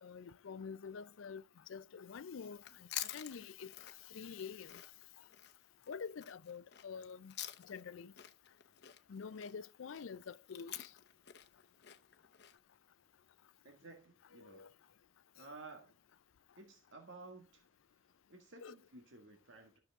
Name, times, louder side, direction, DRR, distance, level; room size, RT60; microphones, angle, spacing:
voice 1, 0.0-1.4 1.7-2.6 3.1-3.7 4.1-4.7 5.9-7.3 7.7-8.1 9.1-10.9 14.4-14.7 18.6-18.7, left 6 dB, 85° left, 0.5 m, -47 dB
Chewing mastication, 2.5-7.9 8.2-12.6, left 12 dB, 55° left, 0.9 m, -48 dB
voice 2, 13.6-14.7 15.3-15.9 16.6-19.8, right 3 dB, 75° right, 1.8 m, -55 dB
12.5 x 6.7 x 3.6 m
head